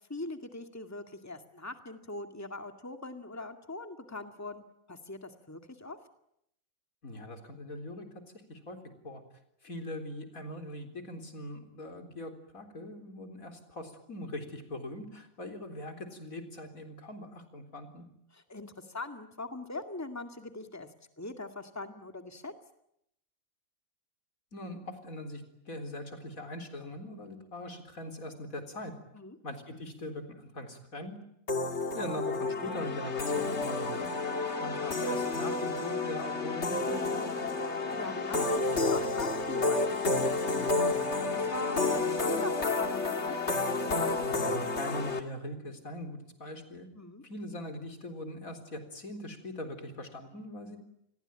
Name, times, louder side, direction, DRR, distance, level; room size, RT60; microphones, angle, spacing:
voice 1, 0.1-6.0 18.3-20.9 21.2-22.5 29.1-29.4 37.8-43.4 46.9-47.2, left 2 dB, 10° left, 6 dB, 2.1 m, -41 dB
voice 2, 7.0-8.1 8.5-8.8 9.0-9.2 9.6-18.0 24.5-25.4 25.7-28.9 29.4-31.2 31.9-34.1 34.6-37.5 44.2-46.9 47.2-50.8, left 1 dB, 85° left, 6 dB, 4.3 m, -41 dB
sound 1, 31.5-45.2, left 3 dB, 55° left, 2.4 m, -30 dB
29.0 x 21.5 x 9.0 m, 0.78 s
omnidirectional pair, 1.4 m